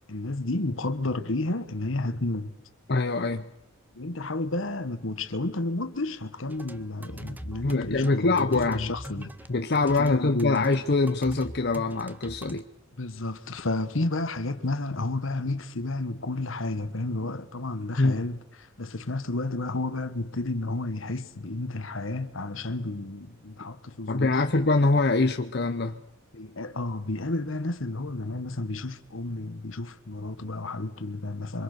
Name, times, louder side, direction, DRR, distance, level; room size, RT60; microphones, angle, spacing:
voice 1, 0.1-2.6 3.9-9.3 9.8-10.6 13.0-18.4 18.8-24.4 26.3-31.6, left 2 dB, 75° left, 1.4 m, -31 dB
voice 2, 2.9-3.5 7.6-8.9 9.5-12.7 18.0-18.3 24.1-26.0, left 3 dB, 55° left, 0.8 m, -24 dB
sound 1, 6.4-12.6, equal, 10° right, 0.8 m, -41 dB
26.0 x 24.5 x 6.7 m
head